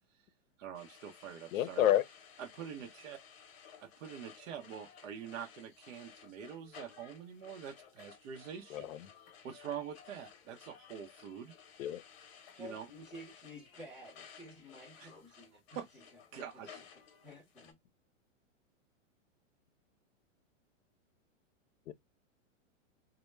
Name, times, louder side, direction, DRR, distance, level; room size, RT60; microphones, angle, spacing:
voice 1, 0.6-1.9 2.4-3.2 3.8-8.9 9.2-11.5 12.5-12.9 15.0-15.1 15.7-16.8, right 8 dB, 75° right, 0.7 m, -45 dB
sound 1, 0.7-17.7, left 7 dB, 50° left, 0.7 m, -57 dB
voice 2, 1.5-2.0 8.7-9.0 11.8-12.0 21.9-22.0, left 12 dB, 90° left, 0.5 m, -29 dB
voice 3, 12.6-15.8 16.3-16.4 16.7-16.8 17.2-17.8, equal, ahead, 0.3 m, -51 dB
2.1 x 2.1 x 3.0 m
hypercardioid pair, 150°, 39 cm